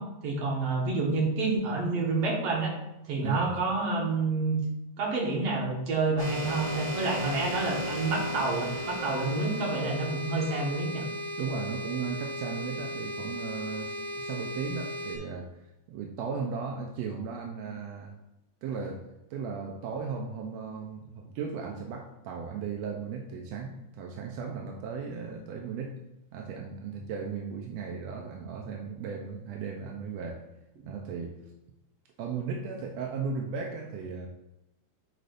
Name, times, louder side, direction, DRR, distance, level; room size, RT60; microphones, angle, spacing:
voice 1, 0.0-2.8 3.0-4.6 5.0-11.0, right 3 dB, 55° right, -2 dB, 2.3 m, -28 dB
voice 2, 3.2-3.5 11.4-15.5 15.9-18.2 18.6-19.0 19.3-26.0 26.3-30.4 30.9-31.4 32.2-34.3, right 5 dB, 75° right, 1 dB, 1.6 m, -36 dB
sound 1, 6.2-15.2, equal, 30° left, 0.6 m, -36 dB
9.0 x 4.9 x 2.5 m, 0.90 s
omnidirectional pair, 3.6 m